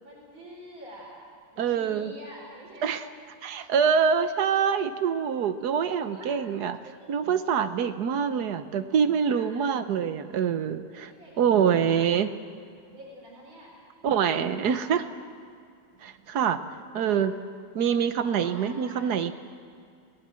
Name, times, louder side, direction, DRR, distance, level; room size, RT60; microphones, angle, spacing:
voice 1, 0.0-1.2 1.5-3.0 5.9-6.4 6.8-7.4 9.3-9.6 10.9-12.0 12.9-13.8 14.1-15.2 17.0-17.2 18.2-19.1, equal, 80° right, -3 dB, 5.4 m, -47 dB
voice 2, 1.6-2.1 2.8-3.0 3.4-6.8 7.1-11.1 11.4-12.3 14.0-15.0 16.0-16.6 16.9-17.3 17.7-19.3, right 7 dB, 60° right, 10 dB, 1.4 m, -25 dB
29.0 x 19.0 x 7.7 m, 2.2 s
omnidirectional pair, 2.2 m